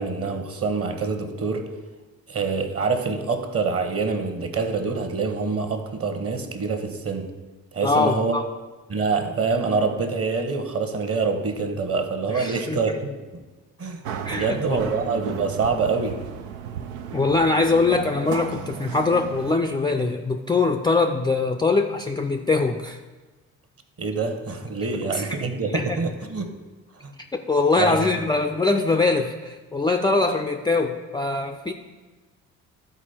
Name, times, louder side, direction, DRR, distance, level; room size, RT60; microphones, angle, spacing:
voice 1, 0.0-1.6 2.3-7.3 7.7-8.4 8.9-13.1 13.8-14.0 14.3-16.2 24.0-26.5 27.0-27.1 27.8-28.0, right 4 dB, 35° right, 7 dB, 1.1 m, -25 dB
voice 2, 7.8-8.4 12.3-12.8 14.2-14.8 17.1-23.0 25.1-25.4 25.7-26.0 27.3-31.7, left 3 dB, 10° left, 3 dB, 0.4 m, -22 dB
sound 1, 14.0-19.5, right 8 dB, 80° right, 0.6 m, -34 dB
12.0 x 4.4 x 4.3 m, 1.3 s
hypercardioid pair, 50°, 41 cm